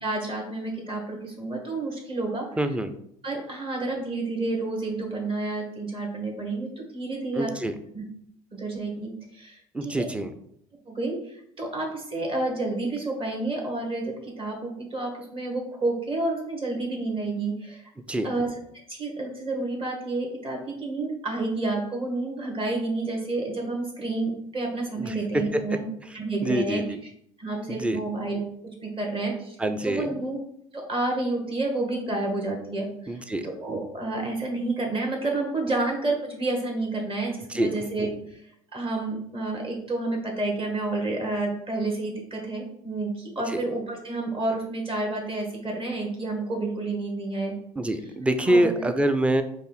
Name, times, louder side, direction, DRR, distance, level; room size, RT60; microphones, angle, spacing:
voice 1, 0.0-2.5 3.2-7.5 7.9-8.0 8.5-10.1 10.9-17.8 18.2-18.5 18.9-25.8 26.1-26.8 27.4-28.4 28.8-29.6 29.8-30.4 30.7-38.4 38.7-47.5 48.5-48.9, right 2 dB, 30° right, 0 dB, 1.9 m, -30 dB
voice 2, 2.6-2.9 7.4-7.7 9.7-10.3 18.1-18.3 25.0-25.2 26.4-27.0 27.7-28.0 29.6-30.1 33.1-33.5 37.5-37.7 43.5-43.6 47.8-49.4, right 1 dB, 5° right, 9 dB, 0.5 m, -25 dB
5.2 x 2.5 x 4.0 m, 0.70 s
figure-of-eight pair, 65°, 18 cm